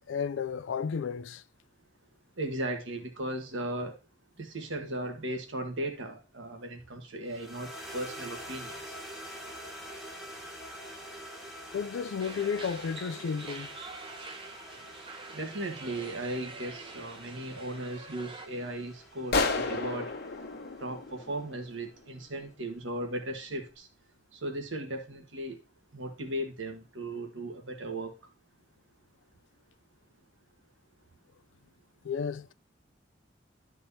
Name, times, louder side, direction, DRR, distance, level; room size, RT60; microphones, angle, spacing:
voice 1, 0.1-1.4 11.7-13.7 32.0-32.5, left 6 dB, 80° left, 0.4 m, -33 dB
voice 2, 2.4-3.9 4.4-9.0 15.3-20.1 20.8-23.9 24.3-25.6 25.9-28.1, right 1 dB, 85° right, 1.5 m, -37 dB
sound 1, 7.3-21.7, equal, ahead, 1.5 m, -47 dB
sound 2, 12.2-18.5, right 3 dB, 30° right, 0.9 m, -46 dB
sound 3, 19.3-21.9, left 3 dB, 55° left, 1.0 m, -31 dB
12.5 x 4.5 x 2.8 m
head